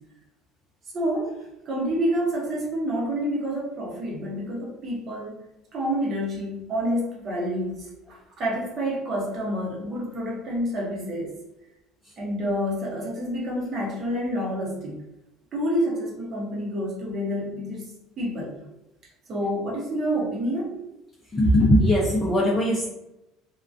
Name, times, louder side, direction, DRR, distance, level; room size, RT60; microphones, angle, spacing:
voice 1, 0.9-1.4 1.7-5.4 5.7-11.3 12.2-14.9 15.5-18.6 19.3-20.8, equal, 35° right, -3 dB, 0.8 m, -28 dB
voice 2, 21.3-22.8, equal, 10° left, -6 dB, 0.4 m, -19 dB
2.4 x 2.2 x 2.5 m, 0.92 s
cardioid pair, 160°, 0 cm